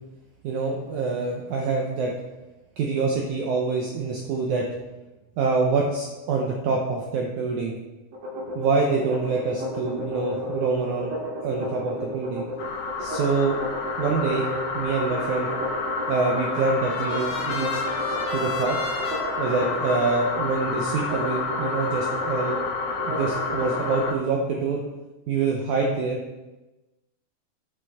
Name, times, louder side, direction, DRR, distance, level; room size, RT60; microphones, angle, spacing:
voice 1, 0.4-2.1 2.8-4.7 5.4-7.7 8.5-12.4 13.0-13.6 14.0-14.5 14.7-15.5 16.1-17.8 18.3-18.8 19.4-22.6 23.0-24.8 25.3-26.2, right 4 dB, 80° right, 0 dB, 1.7 m, -25 dB
sound 1, 8.1-24.1, equal, 60° right, 3.3 m, -33 dB
sound 2, 12.6-24.1, left 4 dB, 75° left, 1.7 m, -30 dB
Trumpet, 16.3-22.1, left 3 dB, 60° left, 2.8 m, -37 dB
9.4 x 6.7 x 3.5 m, 1.1 s
omnidirectional pair, 4.4 m